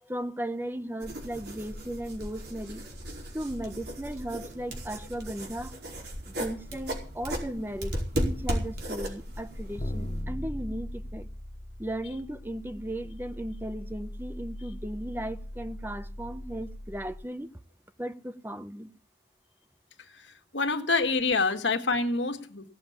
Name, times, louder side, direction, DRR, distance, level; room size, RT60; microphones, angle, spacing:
voice 1, 0.0-2.8 3.3-5.8 6.2-11.3 11.8-17.5 18.0-18.9, right 1 dB, 10° right, 0.8 m, -36 dB
sound 1, 1.0-10.2, equal, 65° right, 4.8 m, -36 dB
sound 2, 9.7-17.2, left 1 dB, 35° left, 0.9 m, -39 dB
voice 2, 20.2-22.7, left 3 dB, 80° left, 1.7 m, -27 dB
17.5 x 7.2 x 8.6 m
head